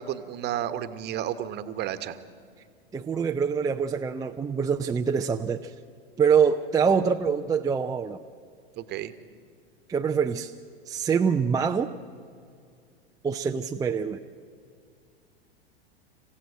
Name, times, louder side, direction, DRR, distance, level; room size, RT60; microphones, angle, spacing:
voice 1, 0.0-2.2 8.8-9.1, right 11 dB, 35° right, 12 dB, 1.3 m, -32 dB
voice 2, 2.9-5.7 6.2-8.2 9.9-10.5 10.9-11.9 13.2-14.2, right 6 dB, 10° right, 4 dB, 0.5 m, -25 dB
27.5 x 15.5 x 8.0 m, 2.2 s
figure-of-eight pair, 90°, 31 cm